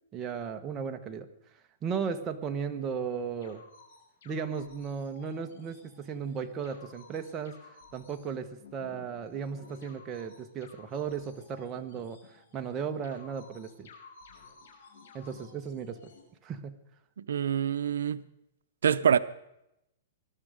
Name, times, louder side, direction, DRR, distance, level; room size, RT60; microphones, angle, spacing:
voice 1, 0.1-1.3 1.8-3.6 4.2-13.9 15.1-16.1 16.4-16.7, right 6 dB, 20° right, 1.1 m, -36 dB
sound 1, 3.4-16.2, left 4 dB, 70° left, 6.4 m, -55 dB
voice 2, 17.2-18.2 18.8-19.2, right 8 dB, 85° right, 0.6 m, -25 dB
20.5 x 12.5 x 5.1 m
hypercardioid pair, 155°, 0 cm